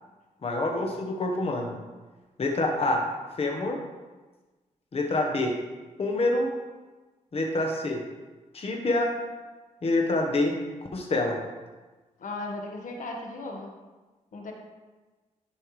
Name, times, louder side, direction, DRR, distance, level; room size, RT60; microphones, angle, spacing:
voice 1, 0.4-1.8 2.4-3.0 3.4-3.8 4.9-5.5 6.0-6.5 7.3-8.0 8.5-9.1 9.8-10.6 10.9-11.4, left 2 dB, 45° left, 1 dB, 1.1 m, -26 dB
voice 2, 12.2-13.7 14.3-14.5, left 2 dB, 70° left, 1 dB, 1.4 m, -36 dB
11.5 x 5.5 x 3.2 m, 1.2 s
cardioid pair, 70°, 14 cm